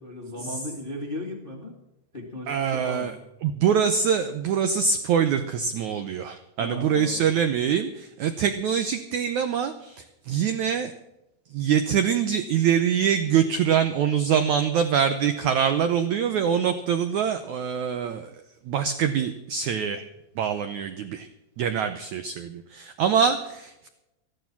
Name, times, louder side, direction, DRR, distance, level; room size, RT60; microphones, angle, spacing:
voice 1, 0.0-1.7 2.1-3.1 6.6-7.2, left 1 dB, 25° left, 0 dB, 1.1 m, -36 dB
voice 2, 2.5-3.1 3.4-10.9 11.5-18.4 18.6-20.0 20.3-21.3 21.6-23.9, right 7 dB, 85° right, 8 dB, 1.7 m, -24 dB
14.5 x 11.5 x 6.0 m, 0.89 s
omnidirectional pair, 4.5 m